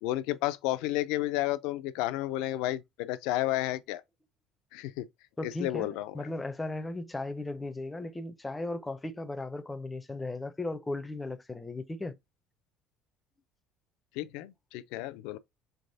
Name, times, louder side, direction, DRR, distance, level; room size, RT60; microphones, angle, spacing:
voice 1, 0.0-4.0 4.7-5.1 5.4-6.1 14.2-15.4, left 15 dB, 80° left, 0.3 m, -32 dB
voice 2, 5.4-12.1, left 2 dB, 10° left, 0.4 m, -36 dB
3.8 x 3.4 x 2.6 m
cardioid pair, 130°, 0 cm